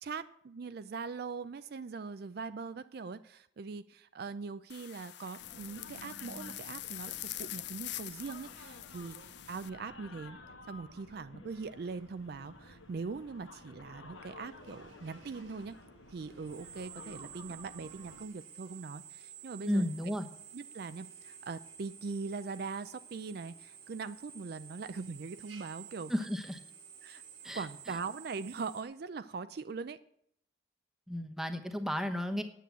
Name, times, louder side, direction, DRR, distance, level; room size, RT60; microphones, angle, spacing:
voice 1, 0.0-10.4 10.7-15.8 16.1-19.9 20.5-26.1 27.0-27.2 27.5-30.0, right 4 dB, 55° right, 13 dB, 0.4 m, -41 dB
sound 1, 4.7-9.7, left 15 dB, 60° left, 0.5 m, -44 dB
sound 2, 5.4-18.3, left 2 dB, 85° left, 1.3 m, -53 dB
Drill, 11.5-28.8, right 8 dB, 85° right, 1.6 m, -53 dB
voice 2, 19.7-20.3 26.1-26.6 27.4-27.6 31.1-32.4, equal, ahead, 6 dB, 0.9 m, -33 dB
9.2 x 7.7 x 8.3 m, 0.71 s
head